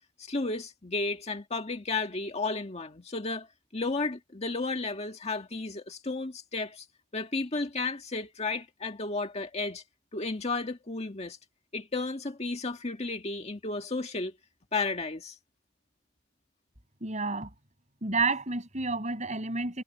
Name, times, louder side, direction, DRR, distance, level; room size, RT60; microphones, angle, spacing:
voice 1, 0.2-3.5 3.7-6.9 7.1-9.8 10.1-11.4 11.7-14.3 14.7-15.4, left 3 dB, 35° left, 1.8 m, -33 dB
voice 2, 17.0-17.5 18.0-19.8, right 3 dB, 40° right, 7.4 m, -30 dB
head